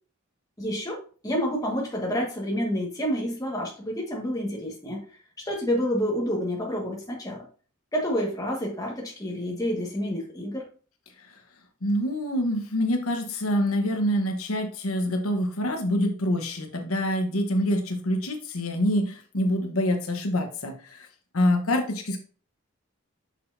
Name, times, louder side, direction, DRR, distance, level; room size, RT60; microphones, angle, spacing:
voice 1, 0.6-5.0 5.4-7.5 7.9-10.6, equal, 15° left, -1 dB, 1.6 m, -29 dB
voice 2, 11.8-21.1 21.3-22.2, left 1 dB, 80° left, 5 dB, 1.1 m, -26 dB
6.4 x 5.9 x 2.6 m, 0.39 s
head